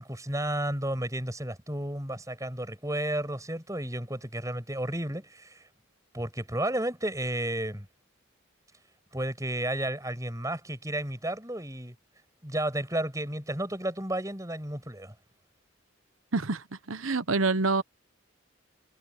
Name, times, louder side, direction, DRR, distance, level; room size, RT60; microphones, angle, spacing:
voice 1, 0.0-5.6 6.1-7.9 9.1-11.9 12.4-15.1, right 1 dB, 15° right, 6.8 m, -32 dB
voice 2, 16.3-17.8, right 3 dB, 85° right, 1.2 m, -27 dB
head